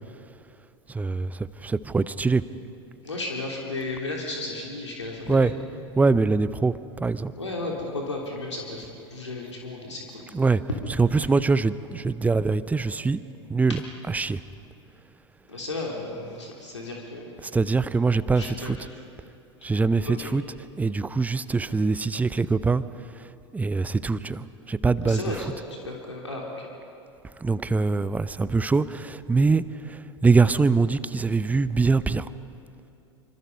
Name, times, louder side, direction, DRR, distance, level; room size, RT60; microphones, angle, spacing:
voice 1, 0.9-2.4 5.3-5.5 6.0-7.3 10.3-10.6 11.0-13.2 13.5-14.4 17.4-18.8 19.6-20.4 20.8-22.8 23.1-25.4 27.4-32.3, right 4 dB, 10° right, 16 dB, 0.7 m, -23 dB
voice 2, 3.0-5.5 7.4-10.2 15.5-17.3 18.4-18.9 20.1-20.3 25.0-25.4 25.8-26.7, left 2 dB, 80° left, -1 dB, 3.1 m, -34 dB
25.5 x 25.5 x 5.4 m, 2.7 s
figure-of-eight pair, 85°, 15 cm